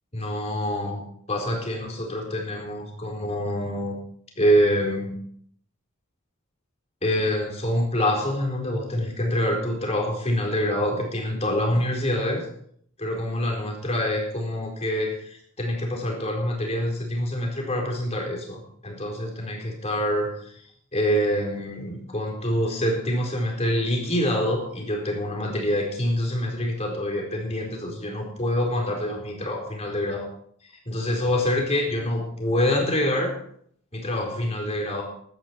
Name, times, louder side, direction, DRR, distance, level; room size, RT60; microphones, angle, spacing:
voice 1, 0.1-4.0 4.4-5.2 7.0-12.5 13.0-20.5 20.9-30.3 30.9-33.3 33.9-35.0, equal, 30° left, 0 dB, 4.2 m, -26 dB
16.0 x 12.0 x 4.5 m, 0.64 s
head